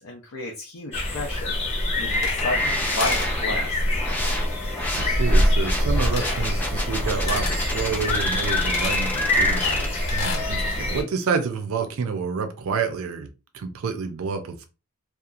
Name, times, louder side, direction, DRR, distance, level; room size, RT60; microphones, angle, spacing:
voice 1, 0.0-1.6 2.0-4.0 10.7-11.1, left 1 dB, 85° left, 0.6 m, -32 dB
sound 1, 0.9-11.0, left 1 dB, 30° left, 0.9 m, -24 dB
sound 2, 2.0-2.7 3.0-3.3 6.1-6.5 7.3-7.6 8.7-9.0 9.6-10.5, left 4 dB, 60° left, 0.8 m, -32 dB
sound 3, 2.4-9.9, left 1 dB, 10° left, 0.4 m, -32 dB
voice 2, 4.9-13.3 13.5-14.7, right 5 dB, 70° right, 0.4 m, -29 dB
2.8 x 2.3 x 2.4 m
head